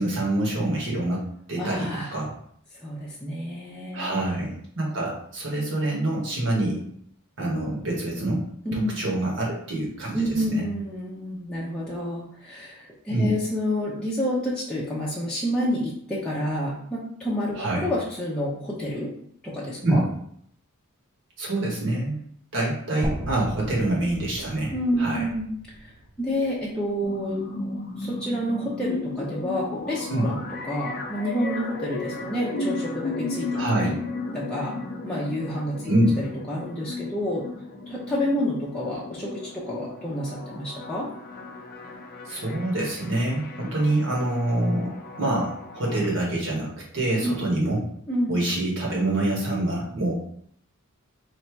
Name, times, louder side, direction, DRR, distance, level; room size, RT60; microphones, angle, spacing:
voice 1, 0.0-2.3 3.9-6.8 7.4-8.5 8.7-10.6 13.1-13.4 17.6-17.9 19.8-20.0 21.4-22.1 22.5-24.7 25.0-25.2 30.1-30.3 33.5-33.9 35.9-36.1 42.2-47.8 48.3-50.1, right 1 dB, 60° right, -3 dB, 1.4 m, -26 dB
voice 2, 1.6-2.1 2.7-4.4 8.6-9.0 10.1-19.1 19.4-20.0 24.7-25.5 25.8-25.9 26.2-27.6 28.0-33.5 33.8-33.9 34.3-34.8 35.0-35.9 36.2-37.5 37.9-41.1 47.2-47.4 48.1-48.3, equal, 5° left, -8 dB, 0.7 m, -29 dB
sound 1, 23.0-27.1, right 1 dB, 25° right, 0.4 m, -36 dB
sound 2, 27.0-46.1, left 3 dB, 45° left, 0.5 m, -35 dB
3.3 x 2.8 x 4.5 m, 0.66 s
head